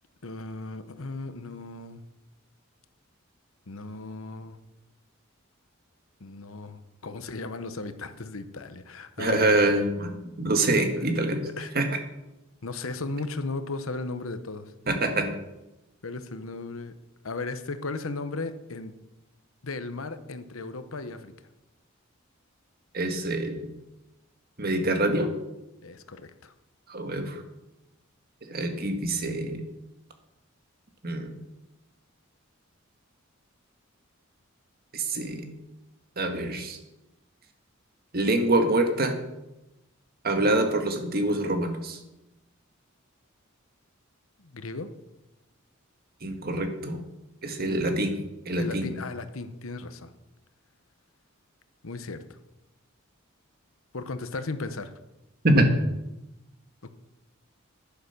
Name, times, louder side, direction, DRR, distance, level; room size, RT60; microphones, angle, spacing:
voice 1, 0.2-2.0 3.7-4.6 6.2-9.6 11.0-11.1 11.6-11.7 12.6-14.7 16.0-16.9 17.2-18.9 19.6-21.3 25.8-26.5 44.4-44.9 47.6-48.1 48.6-50.1 51.8-52.4 53.9-54.9, left 3 dB, 75° left, 10 dB, 1.0 m, -36 dB
voice 2, 9.2-11.5 11.7-11.9 14.9-15.3 22.9-23.7 24.6-25.3 26.9-27.4 28.5-29.6 31.0-31.3 34.9-35.5 36.2-36.8 38.1-39.1 40.2-42.0 46.2-47.0 47.4-48.2 48.4-48.9 55.4-55.8, right 1 dB, 45° right, 5 dB, 1.7 m, -25 dB
10.5 x 10.0 x 6.7 m, 0.95 s
head